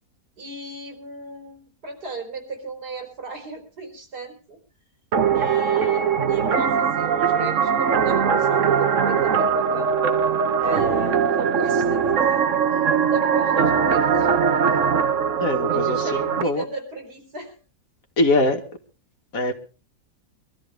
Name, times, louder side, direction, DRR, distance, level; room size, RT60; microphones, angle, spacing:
voice 1, 0.4-4.6 5.3-9.9 10.6-14.3 15.7-17.5, right 2 dB, 90° right, 3 dB, 4.4 m, -36 dB
sound 1, 5.1-16.4, right 7 dB, 55° right, 1.4 m, -21 dB
voice 2, 15.4-16.7 18.2-18.6 19.3-19.5, left 1 dB, 60° left, 4 dB, 2.2 m, -22 dB
24.0 x 13.0 x 3.4 m, 0.34 s
omnidirectional pair, 1.7 m